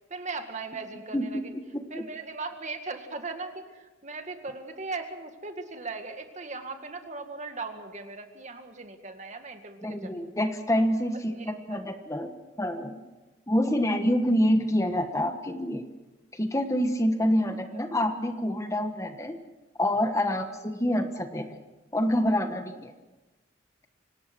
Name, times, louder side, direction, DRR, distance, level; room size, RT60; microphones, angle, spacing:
voice 1, 0.1-1.5 1.9-10.2 11.3-11.8 17.7-17.8 20.3-20.4, right 3 dB, 40° right, 6 dB, 2.0 m, -38 dB
voice 2, 1.1-1.4 1.9-2.0 9.8-12.3 12.6-12.9 13.5-15.8 16.3-19.4 19.8-21.6 21.9-22.9, equal, 15° left, 7 dB, 1.3 m, -27 dB
25.5 x 18.5 x 6.1 m, 1.1 s
head